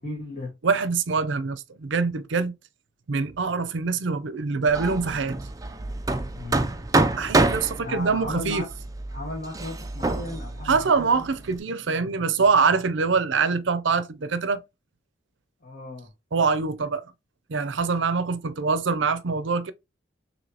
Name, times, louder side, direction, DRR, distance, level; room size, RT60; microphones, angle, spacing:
voice 1, 0.0-0.5 6.3-6.7 7.8-8.7 9.1-11.4 15.6-16.1, left 2 dB, 45° left, 1.5 m, -36 dB
voice 2, 0.6-2.5 3.1-5.4 7.2-8.6 10.7-14.6 16.3-17.1 17.5-19.7, right 5 dB, 70° right, 0.6 m, -24 dB
Hammer, 4.7-11.6, right 2 dB, 20° right, 0.4 m, -27 dB
6.2 x 2.8 x 2.8 m
head